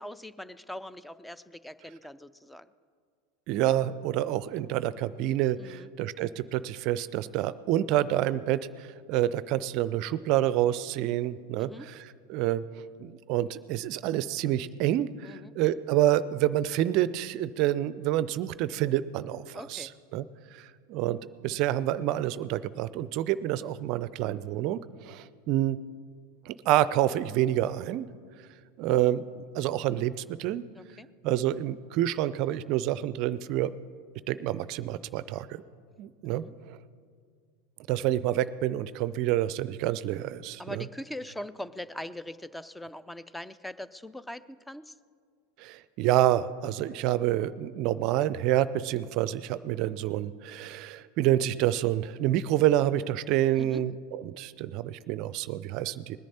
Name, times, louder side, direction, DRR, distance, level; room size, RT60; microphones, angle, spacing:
voice 1, 0.0-2.7 5.6-5.9 11.6-11.9 15.2-15.5 19.5-19.9 30.7-31.1 36.3-36.5 40.6-44.9 53.6-53.8, left 1 dB, 5° left, 15 dB, 0.5 m, -41 dB
voice 2, 3.5-12.6 13.0-20.3 20.5-25.8 26.5-28.1 28.8-30.7 31.2-33.7 34.3-35.6 36.0-36.8 37.9-40.8 45.6-56.2, right 13 dB, 50° right, 17 dB, 0.4 m, -28 dB
20.0 x 10.5 x 4.2 m, 2.1 s
hypercardioid pair, 85°, 0 cm